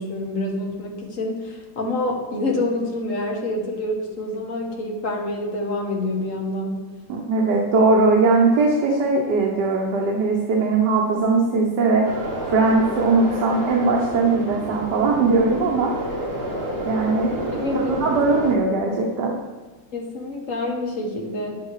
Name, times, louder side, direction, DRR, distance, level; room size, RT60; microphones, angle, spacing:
voice 1, 0.0-6.8 17.5-18.1 19.9-21.6, left 2 dB, 45° left, 0 dB, 1.9 m, -27 dB
voice 2, 7.1-12.1 12.5-16.2 16.8-19.3, right 3 dB, 70° right, 0 dB, 1.7 m, -20 dB
sound 1, 12.0-18.6, right 1 dB, 35° right, 1.8 m, -30 dB
10.0 x 8.9 x 4.9 m, 1.3 s
omnidirectional pair, 1.9 m